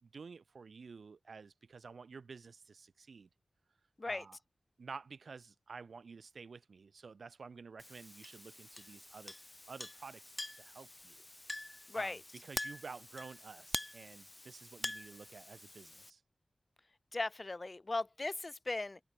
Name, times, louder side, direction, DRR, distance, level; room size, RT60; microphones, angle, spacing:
voice 1, 0.0-3.3 4.0-4.4 4.8-9.4 9.7-10.2 10.5-11.2 11.9-12.2 12.4-16.2, right 5 dB, 85° right, 2.7 m, -51 dB
Chink clink, 7.8-16.1, left 1 dB, 25° left, 3.2 m, -46 dB
voice 2, 11.9-12.2 17.1-19.0, left 2 dB, 40° left, 1.7 m, -38 dB
open air
wide cardioid pair, 70°, 0 cm